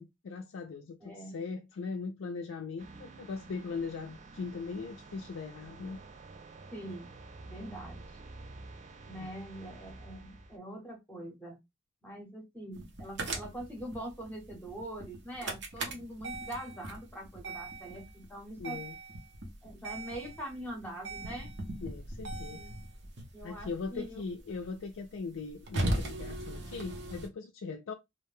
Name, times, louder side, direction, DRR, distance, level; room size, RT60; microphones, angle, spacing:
voice 1, 0.0-6.0 9.2-9.5 18.6-19.0 21.8-22.7 23.4-27.9, left 4 dB, 80° left, 0.4 m, -40 dB
voice 2, 1.0-1.4 6.7-7.1 7.4-8.0 9.0-11.6 12.0-18.8 19.6-21.5 22.5-22.7 23.3-24.3, right 1 dB, 10° left, 0.8 m, -43 dB
sound 1, 2.8-10.6, right 3 dB, 35° right, 0.3 m, -50 dB
sound 2, 12.8-27.3, right 1 dB, 60° right, 0.7 m, -39 dB
2.5 x 2.1 x 3.2 m
head